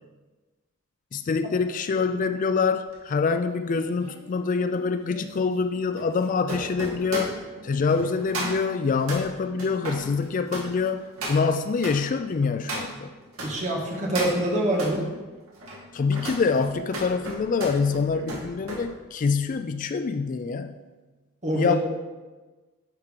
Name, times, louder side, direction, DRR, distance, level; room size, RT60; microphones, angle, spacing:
voice 1, 1.1-7.3 7.6-13.1 15.9-20.8 21.6-21.8, left 5 dB, 35° left, 9 dB, 0.3 m, -25 dB
sound 1, 2.9-13.5 13.9-15.0 15.5-18.8 19.2-19.5, right 1 dB, 75° right, 2.4 m, -36 dB
voice 2, 13.4-15.1 18.1-18.2 21.4-21.8, right 1 dB, 35° right, -1 dB, 1.7 m, -25 dB
10.5 x 4.6 x 5.1 m, 1.2 s
head